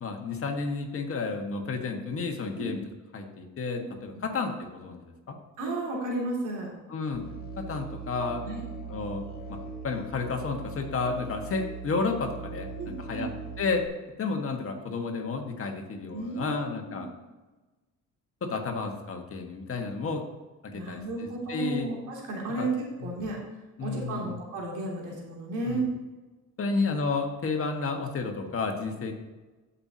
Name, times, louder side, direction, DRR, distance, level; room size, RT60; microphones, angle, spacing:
voice 1, 0.0-2.8 3.1-5.4 6.9-7.2 7.6-8.4 8.9-9.2 9.8-12.7 13.0-13.3 13.6-13.8 14.2-17.1 18.4-20.2 20.6-21.9 22.6-22.7 23.0-23.1 23.8-24.4 25.7-25.8 26.6-29.1, left 4 dB, 50° left, 3 dB, 1.6 m, -31 dB
voice 2, 5.6-6.7 8.4-8.7 12.8-13.2 16.1-17.1 20.7-23.4 23.8-25.9, right 2 dB, 85° right, -2 dB, 2.8 m, -33 dB
Musical instrument, 7.1-13.9, right 5 dB, 30° left, 1.7 m, -40 dB
15.0 x 5.7 x 2.9 m, 1.2 s
cardioid pair, 90°, 30 cm